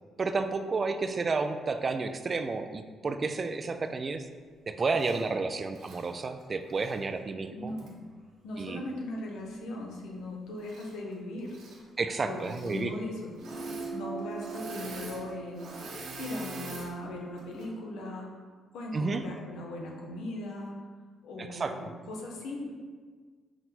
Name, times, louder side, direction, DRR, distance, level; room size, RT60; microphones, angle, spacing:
voice 1, 0.2-4.2 4.7-7.7 8.6-8.8 12.0-13.0 18.9-19.2 21.4-21.7, right 4 dB, 35° right, 8 dB, 0.3 m, -31 dB
Engine / Mechanisms, 4.9-5.2 5.7-7.0 7.8-7.9 10.6-11.1 11.4-11.8 12.4-12.8 13.3-13.9 14.2-16.9 17.4-17.7, right 3 dB, 75° right, 0.9 m, -45 dB
voice 2, 7.5-8.0 8.4-11.5 12.2-15.7 16.2-18.3 18.7-20.8 21.2-22.7, left 2 dB, 85° left, -1 dB, 0.8 m, -39 dB
sound 1, 13.4-18.2, right 5 dB, 10° right, 0.7 m, -42 dB
5.9 x 2.2 x 4.1 m, 1.6 s
cardioid pair, 90°, 0 cm